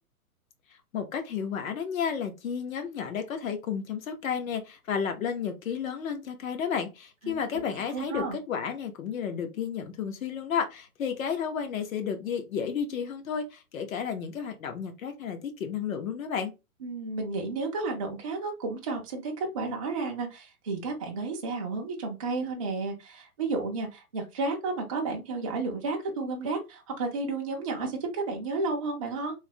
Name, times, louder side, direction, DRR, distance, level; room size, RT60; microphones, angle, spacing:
voice 1, 0.9-16.5, left 7 dB, 60° left, 6 dB, 0.8 m, -32 dB
voice 2, 7.2-7.7 7.9-8.4 16.8-29.3, right 3 dB, 25° right, 1 dB, 0.3 m, -32 dB
3.1 x 2.1 x 2.7 m, 0.26 s
hypercardioid pair, 125°, 45 cm